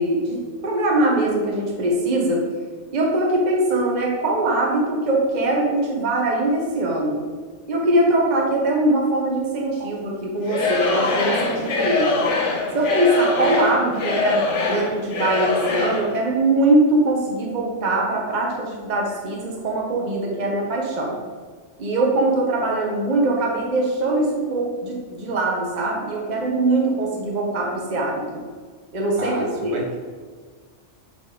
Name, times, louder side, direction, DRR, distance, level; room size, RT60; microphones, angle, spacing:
voice 1, 0.0-2.4 2.9-7.2 7.7-12.3 12.7-21.2 21.8-28.4 28.9-29.7, right 2 dB, 40° right, -1 dB, 1.1 m, -22 dB
Singing / Crowd, 10.4-16.1, left 3 dB, 70° left, 1.2 m, -23 dB
voice 2, 29.2-30.0, right 1 dB, 65° right, -1 dB, 1.4 m, -30 dB
7.1 x 4.1 x 3.8 m, 1.6 s
omnidirectional pair, 1.3 m